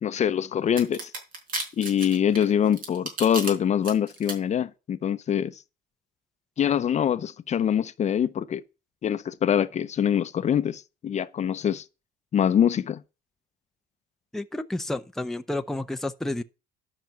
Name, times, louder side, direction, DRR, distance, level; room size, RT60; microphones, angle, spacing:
voice 1, 0.0-1.1 1.8-5.6 6.6-8.6 9.0-11.8 12.3-13.0, left 9 dB, 40° left, 0.7 m, -24 dB
sound 1, 0.8-3.5 3.8-4.3, right 3 dB, 55° right, 4.8 m, -33 dB
voice 2, 14.3-16.4, left 1 dB, ahead, 0.7 m, -30 dB
12.0 x 6.1 x 5.7 m
cardioid pair, 110°, 17 cm